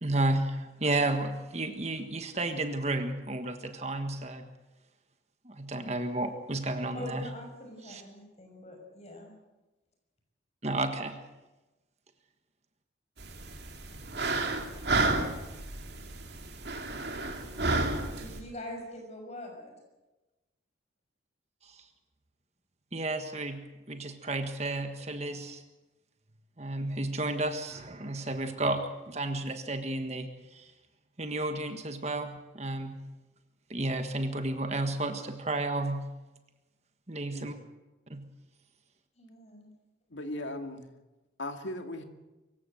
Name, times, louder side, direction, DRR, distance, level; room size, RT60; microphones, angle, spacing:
voice 1, 0.0-4.5 5.4-7.3 7.9-8.0 10.6-11.2 21.6-21.8 22.9-25.6 26.6-30.7 31.2-33.1 33.7-36.1 37.1-37.5 38.1-38.3, right 2 dB, 35° right, 7 dB, 1.5 m, -32 dB
voice 2, 6.9-9.3 18.2-19.7 39.2-39.7, left 1 dB, 35° left, 2 dB, 6.2 m, -43 dB
sound 1, 13.2-18.4, right 2 dB, 60° right, 2.6 m, -31 dB
voice 3, 40.1-40.9 41.4-42.0, left 1 dB, 80° left, 6 dB, 2.3 m, -37 dB
24.5 x 15.5 x 7.9 m, 1.1 s
head